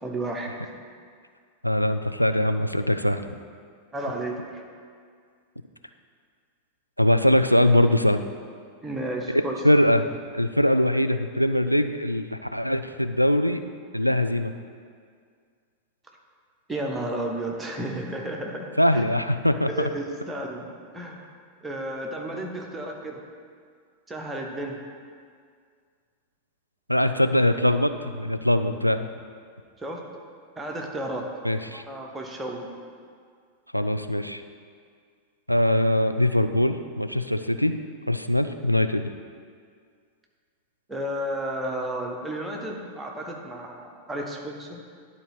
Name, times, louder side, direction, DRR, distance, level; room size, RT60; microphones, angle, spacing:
voice 1, 0.0-0.5 3.9-4.6 8.8-9.5 16.7-19.0 19.7-21.3 21.6-23.2 24.1-24.8 29.8-30.1 30.6-31.3 31.7-32.7 40.9-44.8, right 1 dB, 10° right, 0 dB, 1.0 m, -32 dB
voice 2, 1.6-3.2 7.0-8.2 9.6-10.1 10.3-13.6 13.9-14.5 18.8-19.9 26.9-29.1 31.4-31.8 33.7-34.4 35.5-37.7 38.1-39.1, left 1 dB, 90° left, 8 dB, 0.3 m, -22 dB
11.0 x 4.1 x 4.8 m, 2.1 s
figure-of-eight pair, 90°, 0 cm